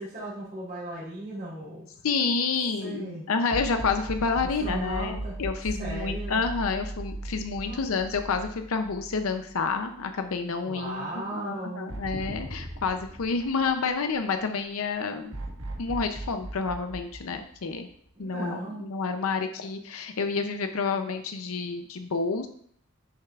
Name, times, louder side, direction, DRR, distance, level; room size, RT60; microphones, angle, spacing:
voice 1, 0.0-1.9 2.8-3.3 4.6-5.3 5.8-6.4 7.6-8.0 10.6-11.9 18.1-18.8, right 1 dB, 35° right, -11 dB, 3.2 m, -36 dB
voice 2, 2.0-15.3 15.8-17.9 18.2-22.5, left 4 dB, 70° left, 7 dB, 0.6 m, -29 dB
sound 1, 3.5-9.8 10.2-10.3 11.9-14.4 15.3-18.1, right 2 dB, 55° right, 1.5 m, -37 dB
10.5 x 6.4 x 2.4 m, 0.63 s
head